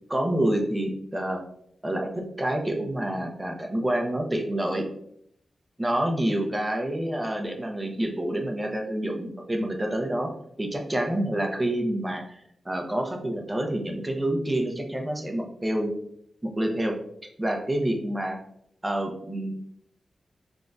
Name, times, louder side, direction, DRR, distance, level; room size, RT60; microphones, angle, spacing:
voice 1, 0.1-1.4 1.8-4.8 5.8-10.3 10.6-15.9 16.4-17.0 17.4-18.4 18.8-19.5, right 1 dB, 15° right, 3 dB, 0.7 m, -28 dB
5.9 x 2.3 x 2.6 m, 0.70 s
wide cardioid pair, 100°, 0 cm